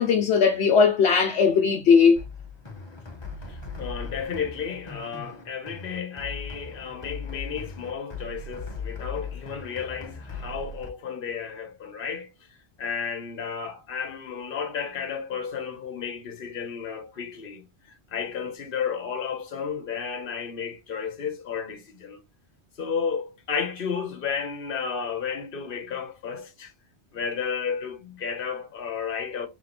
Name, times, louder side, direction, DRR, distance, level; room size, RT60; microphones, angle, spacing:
voice 1, 0.0-2.2, left 6 dB, 75° left, 0.9 m, -18 dB
sound 1, 2.2-10.9, left 4 dB, 25° left, 0.9 m, -39 dB
voice 2, 3.5-12.3 12.8-17.6 18.1-22.2 22.8-26.7 27.1-29.5, left 6 dB, 55° left, 1.1 m, -32 dB
3.6 x 3.4 x 3.8 m
omnidirectional pair, 1.1 m